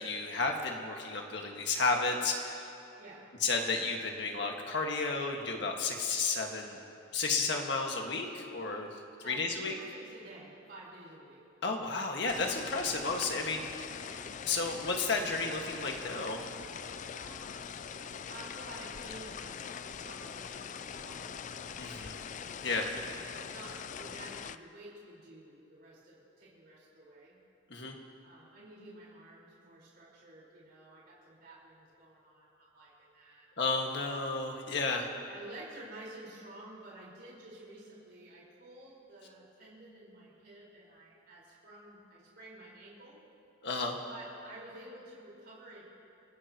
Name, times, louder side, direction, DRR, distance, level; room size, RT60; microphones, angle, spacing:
voice 1, 0.0-2.7 3.4-6.8 7.1-9.0 9.2-9.7 11.6-13.9 14.5-16.4 21.8-22.2 22.6-22.9 27.7-28.0 33.6-35.1 43.6-44.0, left 3 dB, 60° left, 1 dB, 1.8 m, -32 dB
voice 2, 3.0-3.3 9.2-11.4 14.0-14.3 17.1-17.5 18.3-21.4 21.7-22.2 23.0-27.4 28.2-33.5 35.3-43.2 44.1-45.8, right 1 dB, 55° right, -6 dB, 4.6 m, -51 dB
sound 1, 12.3-24.6, left 7 dB, 40° left, 0.4 m, -43 dB
29.5 x 16.0 x 3.0 m, 2.6 s
head